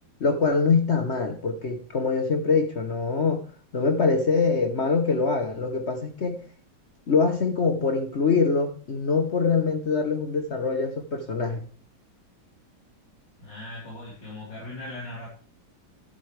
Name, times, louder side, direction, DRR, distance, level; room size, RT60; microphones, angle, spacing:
voice 1, 0.2-3.4 3.7-6.4 7.1-11.6, left 4 dB, 45° left, 7 dB, 1.0 m, -24 dB
voice 2, 13.4-15.3, left 2 dB, 65° left, -6 dB, 4.5 m, -39 dB
11.5 x 11.5 x 3.3 m, 0.40 s
omnidirectional pair, 2.1 m